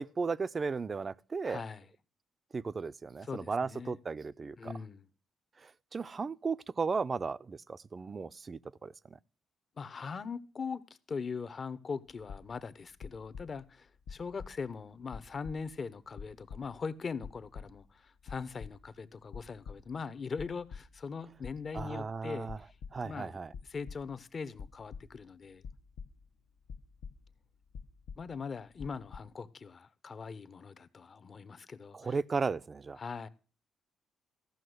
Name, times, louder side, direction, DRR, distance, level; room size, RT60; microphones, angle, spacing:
voice 1, 0.0-1.6 2.5-4.7 5.6-8.9 21.7-22.6 22.9-23.5 31.9-33.0, right 4 dB, 35° right, 0.5 m, -35 dB
voice 2, 1.4-1.9 3.2-4.0 4.6-5.1 9.8-10.8 11.1-23.4 23.6-25.6 28.2-32.2 33.0-33.3, left 5 dB, 40° left, 0.8 m, -41 dB
sound 1, 12.1-12.7 13.0-13.8 14.1-14.8 15.1-15.9 16.2-16.9 17.2-18.0 18.2-19.0 19.3-20.0 20.3-21.1 21.4-22.2 22.4-23.2 23.5-24.2 24.6-26.4 26.7-27.4 27.7-28.5 28.8-29.2, left 6 dB, 75° left, 1.0 m, -47 dB
14.0 x 6.1 x 7.9 m
cardioid pair, 90°, 0 cm